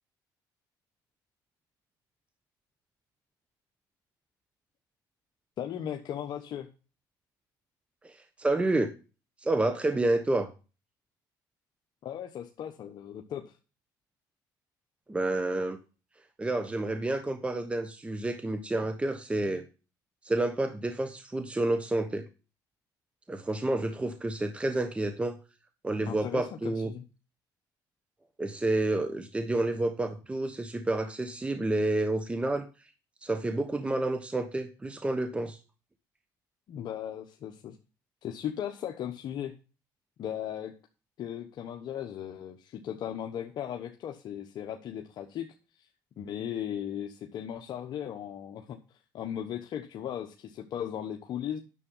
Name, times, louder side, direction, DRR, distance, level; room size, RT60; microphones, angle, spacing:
voice 1, 5.6-6.7 12.0-13.6 26.0-27.0 36.7-37.8 38.2-39.5 40.2-40.7 41.2-45.5 45.8-45.9 46.2-51.6, left 10 dB, 60° left, 4 dB, 1.1 m, -37 dB
voice 2, 8.0-8.9 9.4-10.5 15.1-15.8 16.4-19.6 20.2-22.3 23.3-25.4 25.8-26.9 28.4-32.7 33.2-35.6, right 2 dB, 15° right, 8 dB, 1.1 m, -29 dB
9.8 x 7.1 x 5.5 m, 0.33 s
cardioid pair, 100°, 8 cm